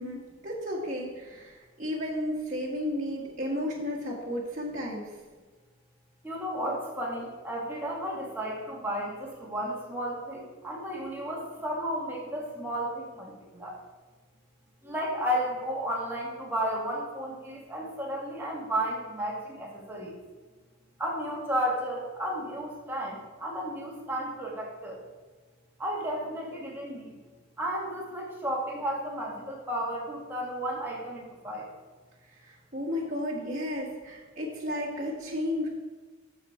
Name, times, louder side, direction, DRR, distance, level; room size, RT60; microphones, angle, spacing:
voice 1, 0.0-5.1 32.3-35.7, left 1 dB, 40° right, -5 dB, 1.5 m, -33 dB
voice 2, 6.2-13.8 14.8-20.2 21.0-25.0 25.8-27.2 27.6-31.7, equal, 10° right, -3 dB, 1.7 m, -33 dB
7.1 x 6.7 x 4.9 m, 1.3 s
head